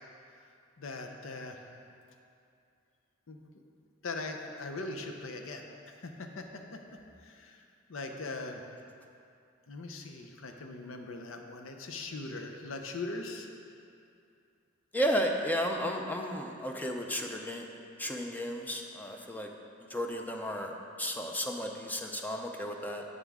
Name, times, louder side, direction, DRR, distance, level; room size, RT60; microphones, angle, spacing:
voice 1, 0.8-1.6 3.3-3.4 4.0-5.6 6.0-6.8 7.2-7.6 7.9-8.6 9.7-13.5, left 3 dB, 85° left, 4 dB, 0.7 m, -40 dB
voice 2, 14.9-17.7 18.0-19.5 19.9-20.7 21.0-23.0, equal, 10° left, 2 dB, 0.5 m, -33 dB
8.1 x 7.2 x 3.6 m, 2.5 s
head